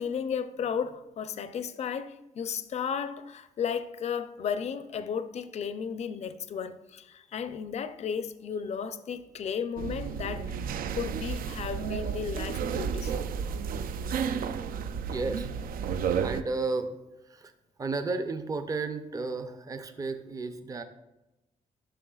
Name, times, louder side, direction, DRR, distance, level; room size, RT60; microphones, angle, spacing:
voice 1, 0.0-13.3, left 7 dB, 50° left, 0.4 m, -34 dB
sound 1, 9.8-16.4, right 6 dB, 80° right, 0.4 m, -32 dB
voice 2, 15.1-15.5 16.1-17.0 17.2-17.5 17.8-20.8, right 3 dB, 25° right, 0.5 m, -33 dB
11.0 x 6.0 x 2.3 m
wide cardioid pair, 165°, 15 cm